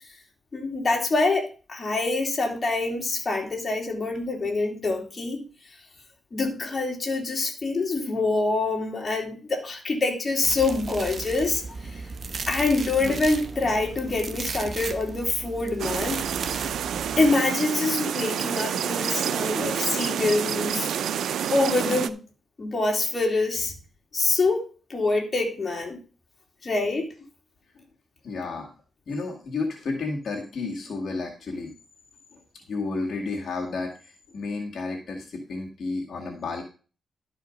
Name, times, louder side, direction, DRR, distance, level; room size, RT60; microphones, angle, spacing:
voice 1, 0.5-5.4 6.3-12.0 12.5-16.2 17.2-20.9 21.5-22.2 22.6-23.7 24.1-24.6 24.9-26.0 26.6-27.1, left 3 dB, 30° left, 1 dB, 2.9 m, -25 dB
sound 1, 10.4-17.3, right 4 dB, 45° right, 1.0 m, -36 dB
sound 2, 15.8-22.1, right 9 dB, 80° right, 0.5 m, -28 dB
voice 2, 28.2-28.7 29.1-31.7 32.3-32.4 32.7-36.6, left 3 dB, 60° left, 0 dB, 2.1 m, -32 dB
12.0 x 5.0 x 5.1 m, 0.36 s
cardioid pair, 100°, 0 cm